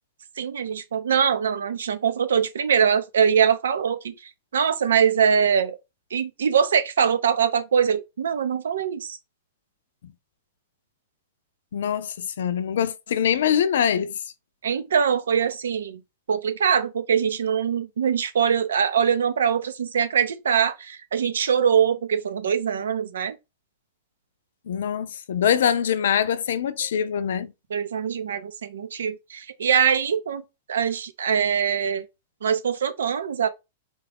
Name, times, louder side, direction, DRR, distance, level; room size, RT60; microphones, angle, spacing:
voice 1, 0.4-5.8 6.1-9.2 14.6-16.0 16.3-23.4 27.7-30.4 30.7-32.1 32.4-33.5, right 7 dB, 90° right, 0.6 m, -23 dB
voice 2, 11.7-14.1 24.7-27.5, left 8 dB, 75° left, 0.5 m, -23 dB
3.6 x 2.4 x 3.4 m
hypercardioid pair, 130°, 0 cm